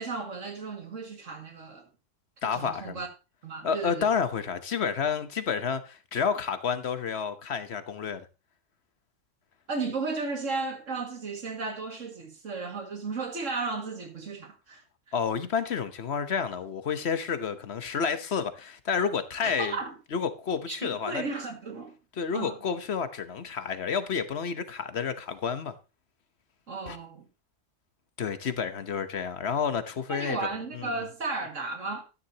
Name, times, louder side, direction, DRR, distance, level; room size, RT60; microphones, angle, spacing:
voice 1, 0.0-1.9 2.4-3.1 3.4-4.1 9.7-14.8 19.4-19.9 20.7-22.0 22.3-22.6 26.7-27.3 30.1-32.0, right 4 dB, 85° right, 2.4 m, -34 dB
voice 2, 2.4-3.0 3.6-8.3 15.1-19.8 20.1-21.3 22.2-25.7 26.9-27.0 28.2-30.5 30.7-30.9, left 6 dB, 60° left, 1.2 m, -30 dB
12.5 x 10.0 x 2.8 m
omnidirectional pair, 1.3 m